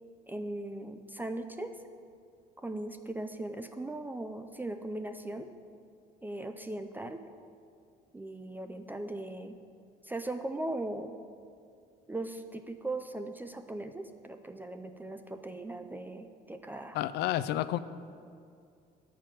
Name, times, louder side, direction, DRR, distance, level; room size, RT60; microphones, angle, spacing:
voice 1, 0.3-1.8 2.6-5.5 6.2-7.2 8.1-9.6 10.0-11.1 12.1-17.0, right 2 dB, 10° right, 7 dB, 0.4 m, -39 dB
voice 2, 16.9-17.8, left 13 dB, 75° left, 15 dB, 0.4 m, -30 dB
8.4 x 4.7 x 7.5 m, 2.4 s
cardioid pair, 110°, 17 cm